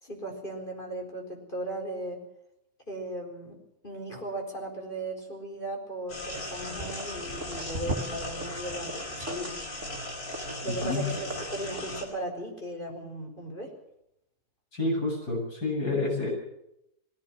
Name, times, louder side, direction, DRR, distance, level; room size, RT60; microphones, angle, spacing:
voice 1, 0.0-2.2 2.9-3.6 3.8-9.6 10.6-13.7, right 1 dB, 30° left, 1 dB, 4.7 m, -37 dB
sound 1, 6.1-12.1, left 1 dB, 70° left, 4.8 m, -38 dB
sound 2, 6.5-11.9, right 2 dB, 50° right, 2.4 m, -40 dB
voice 2, 14.7-16.3, left 2 dB, 90° left, 0 dB, 8.6 m, -29 dB
20.5 x 17.0 x 7.5 m, 0.81 s
omnidirectional pair, 1.7 m